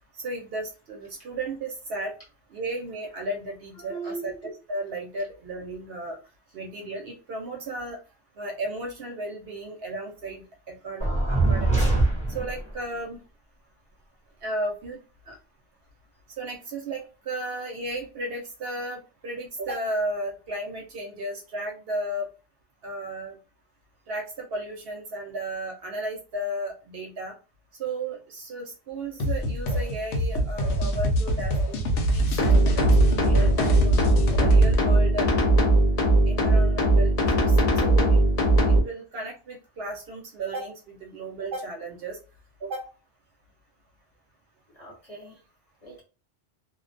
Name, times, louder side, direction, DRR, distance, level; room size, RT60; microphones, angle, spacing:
voice 1, 0.2-2.1 2.5-4.3 4.7-6.2 6.5-8.0 8.4-11.8 12.3-13.2 14.4-15.0 15.3-15.4 16.4-22.3 22.8-23.4 24.1-27.3 27.8-34.0 34.4-35.3 36.3-38.2 38.7-42.2 42.6-42.9, right 1 dB, 65° right, 0 dB, 0.7 m, -34 dB
voice 2, 3.8-4.4 44.7-45.4 45.8-46.0, right 3 dB, 35° left, -2 dB, 0.9 m, -39 dB
sound 1, 11.0-12.7, right 2 dB, 10° left, 0.6 m, -23 dB
sound 2, 29.2-34.8, right 1 dB, 85° left, 0.9 m, -25 dB
sound 3, 32.4-38.8, right 1 dB, 60° left, 0.4 m, -20 dB
2.3 x 2.1 x 2.4 m, 0.33 s
omnidirectional pair, 1.2 m